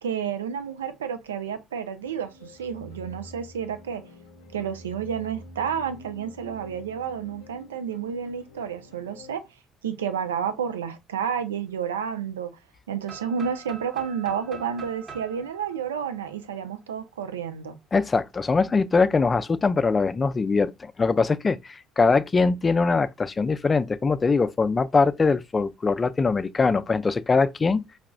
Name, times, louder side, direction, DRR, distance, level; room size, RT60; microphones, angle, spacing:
voice 1, 0.0-4.0 4.5-9.4 9.8-12.5 12.9-17.8, right 7 dB, 90° right, 0.4 m, -30 dB
sound 1, 2.0-9.3, left 1 dB, 85° left, 0.5 m, -47 dB
sound 2, 13.1-16.9, right 6 dB, 45° right, 1.0 m, -44 dB
voice 2, 17.9-27.8, left 4 dB, 30° left, 0.4 m, -22 dB
4.8 x 2.4 x 2.2 m
hypercardioid pair, 55°, 0 cm